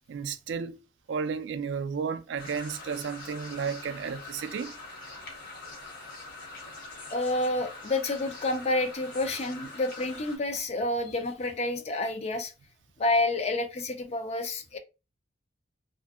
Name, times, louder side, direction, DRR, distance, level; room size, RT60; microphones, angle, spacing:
voice 1, 0.1-0.8 1.1-4.7, right 6 dB, 75° right, 0.3 m, -33 dB
sound 1, 2.4-10.4, left 3 dB, 50° left, 1.1 m, -44 dB
voice 2, 7.1-12.5 13.0-14.8, left 2 dB, 35° left, 0.4 m, -29 dB
2.6 x 2.4 x 2.3 m
head